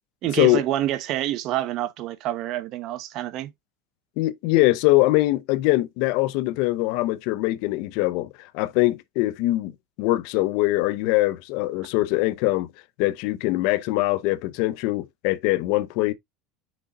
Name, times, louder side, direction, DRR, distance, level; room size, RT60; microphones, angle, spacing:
voice 1, 0.2-3.5, right 13 dB, 50° right, 0.9 m, -27 dB
voice 2, 4.2-9.7 10.0-12.7 13.0-16.1, left 18 dB, 65° left, 0.6 m, -22 dB
6.2 x 3.8 x 4.1 m
supercardioid pair, 150°, 0 cm